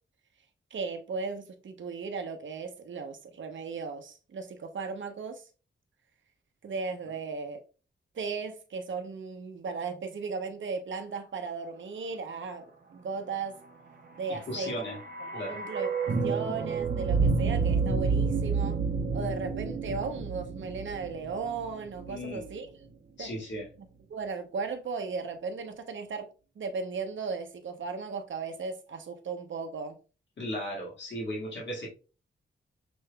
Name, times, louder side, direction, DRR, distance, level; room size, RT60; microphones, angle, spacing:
voice 1, 0.7-5.4 6.6-7.6 8.1-13.6 14.2-14.7 15.2-15.9 16.2-18.8 19.1-22.7 23.2-23.3 24.1-26.3 26.6-30.0, right 4 dB, 70° right, 0.8 m, -36 dB
voice 2, 14.3-15.0 15.3-15.6 22.1-22.5 23.2-23.7 30.4-31.9, equal, 65° left, 1.8 m, -36 dB
sound 1, 14.4-22.5 22.8-22.9, right 4 dB, 45° right, 0.9 m, -30 dB
6.0 x 3.6 x 2.2 m
wide cardioid pair, 130°, 20 cm